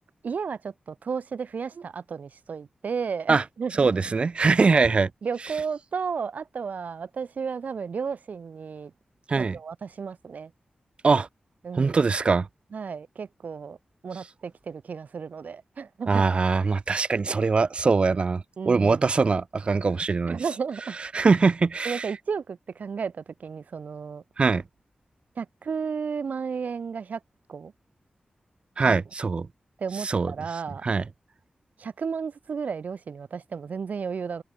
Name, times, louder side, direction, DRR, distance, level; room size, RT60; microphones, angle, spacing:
voice 1, 0.2-3.9 5.2-8.9 9.4-10.5 11.6-12.0 12.7-13.8 14.0-16.2 18.6-19.0 20.3-21.0 21.8-24.2 25.4-27.2 27.5-27.7 28.8-29.0 29.8-30.8 31.8-34.4, right 6 dB, 70° right, 1.0 m, -33 dB
voice 2, 3.8-5.1 9.3-9.6 11.0-11.3 11.7-12.5 16.1-20.4 21.1-22.1 24.4-24.6 28.8-29.5 30.0-30.3 30.8-31.0, right 4 dB, 40° right, 0.3 m, -22 dB
wide cardioid pair, 130°, 3 cm